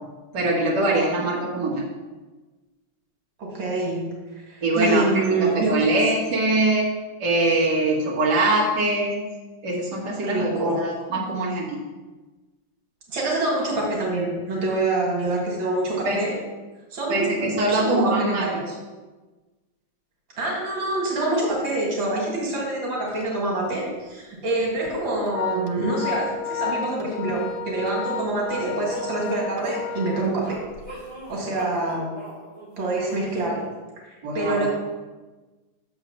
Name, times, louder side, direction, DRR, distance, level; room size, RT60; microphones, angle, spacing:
voice 1, 0.3-1.9 4.6-5.1 5.4-6.9 7.2-9.3 9.6-11.8 16.0-16.2 17.1-18.5 34.2-34.7, right 2 dB, 60° right, -5 dB, 2.0 m, -23 dB
voice 2, 3.4-4.1 4.5-6.0 10.2-10.8 13.1-16.3 16.9-18.7 20.4-30.6 30.9-31.0 31.3-32.1 32.8-33.7 34.3-34.7, right 2 dB, 90° right, -2 dB, 2.5 m, -26 dB
Organ, 23.1-23.3 23.7-23.8 24.6-30.9, left 6 dB, 80° left, 1.4 m, -32 dB
sound 1, 28.6-33.4, equal, 15° right, 2.5 m, -38 dB
6.4 x 4.7 x 6.5 m, 1.2 s
omnidirectional pair, 2.1 m